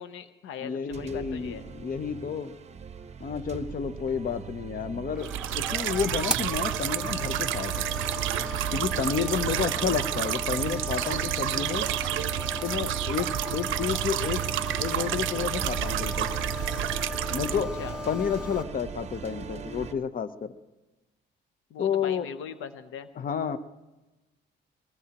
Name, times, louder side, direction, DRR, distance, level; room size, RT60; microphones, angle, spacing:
voice 1, 0.0-1.7 9.3-9.7 17.5-18.0 21.7-23.1, left 7 dB, 85° left, 11 dB, 0.9 m, -40 dB
voice 2, 0.6-2.5 3.2-7.8 8.7-11.9 12.6-14.4 14.8-16.3 17.3-17.7 18.1-20.5 21.8-22.3 23.2-23.6, left 7 dB, 45° left, 12 dB, 0.7 m, -30 dB
sound 1, 0.9-19.9, right 7 dB, 35° right, 0.7 m, -40 dB
sound 2, 5.1-18.6, left 2 dB, 5° right, 0.8 m, -37 dB
sound 3, 5.2-17.6, right 14 dB, 80° right, 0.5 m, -30 dB
22.0 x 21.0 x 3.0 m, 1.1 s
cardioid pair, 90°, 20 cm